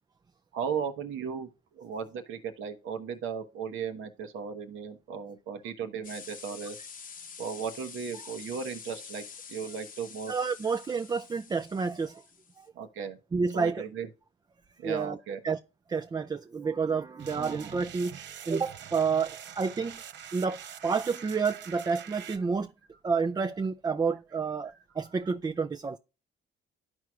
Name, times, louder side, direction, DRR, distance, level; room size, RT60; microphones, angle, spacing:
voice 1, 0.5-6.8 7.4-10.3 12.7-13.2 13.5-14.1 14.8-15.4, right 6 dB, 85° right, 1.1 m, -36 dB
sound 1, 6.0-12.7, left 6 dB, 45° left, 0.8 m, -47 dB
voice 2, 10.3-12.2 12.6-12.7 13.3-13.9 14.8-15.2 15.4-15.6 15.9-18.2 18.5-20.0 20.3-22.7 23.0-26.0, right 5 dB, 20° right, 0.3 m, -29 dB
sound 2, 17.2-22.4, right 9 dB, 65° right, 0.7 m, -45 dB
13.0 x 4.6 x 2.4 m
cardioid pair, 90°, 20 cm